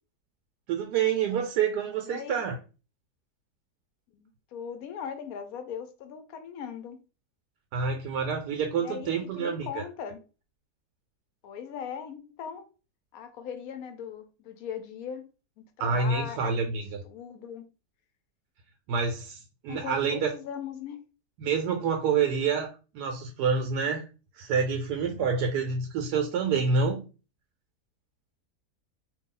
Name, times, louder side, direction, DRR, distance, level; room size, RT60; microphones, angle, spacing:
voice 1, 0.7-2.6 7.7-9.8 15.8-17.0 18.9-19.4 19.6-20.3 21.4-22.7 22.9-24.0 24.4-27.1, right 5 dB, 90° right, 3 dB, 1.2 m, -27 dB
voice 2, 2.0-2.4 4.1-7.0 8.8-10.2 11.4-12.7 13.1-15.2 15.6-16.8 17.0-17.7 19.7-21.0, left 7 dB, 70° left, 8 dB, 1.0 m, -39 dB
3.0 x 2.7 x 3.7 m, 0.33 s
omnidirectional pair, 1.7 m